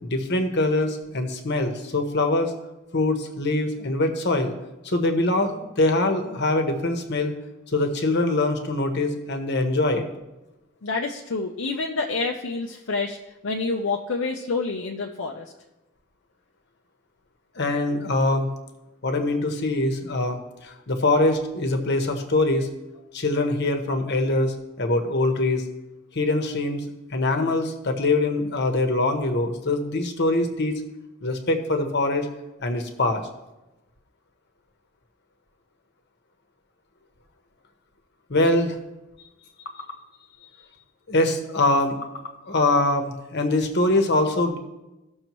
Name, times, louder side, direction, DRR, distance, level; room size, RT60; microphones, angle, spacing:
voice 1, 0.0-2.5 2.9-4.5 4.8-7.3 7.7-10.1 17.5-18.5 19.0-22.7 23.1-25.6 26.1-26.8 27.1-30.8 31.2-32.3 32.6-33.2 38.3-38.8 41.1-44.6, left 2 dB, 55° left, 5 dB, 1.1 m, -23 dB
voice 2, 10.8-13.2 13.4-15.5, left 3 dB, 70° left, 0 dB, 0.7 m, -28 dB
16.5 x 6.4 x 3.1 m, 1.0 s
head